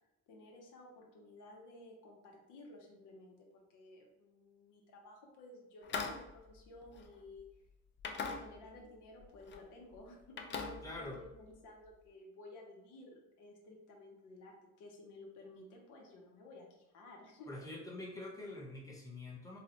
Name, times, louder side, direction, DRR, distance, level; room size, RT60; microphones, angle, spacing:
voice 1, 0.3-7.5 8.1-17.5, left 2 dB, 90° left, 0 dB, 0.9 m, -55 dB
sound 1, 5.8-7.5 8.0-8.9 9.2-9.6 9.9-11.5, left 5 dB, 40° left, 0.5 m, -43 dB
voice 2, 10.8-11.2 17.5-19.6, left 2 dB, 10° left, -3 dB, 0.9 m, -45 dB
3.9 x 2.1 x 2.9 m, 0.89 s
cardioid pair, 90°, 30 cm